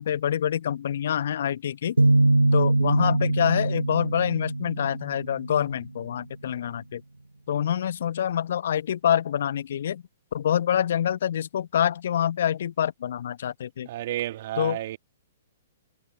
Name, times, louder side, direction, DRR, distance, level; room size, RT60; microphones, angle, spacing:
voice 1, 0.0-2.0 2.5-7.0 7.5-10.0 10.3-13.9 14.6-14.8, left 9 dB, 60° left, 1.1 m, -26 dB
sound 1, 2.0-5.7, right 2 dB, 90° right, 1.1 m, -23 dB
voice 2, 13.9-15.0, right 14 dB, 50° right, 2.3 m, -31 dB
figure-of-eight pair, 115°, 0 cm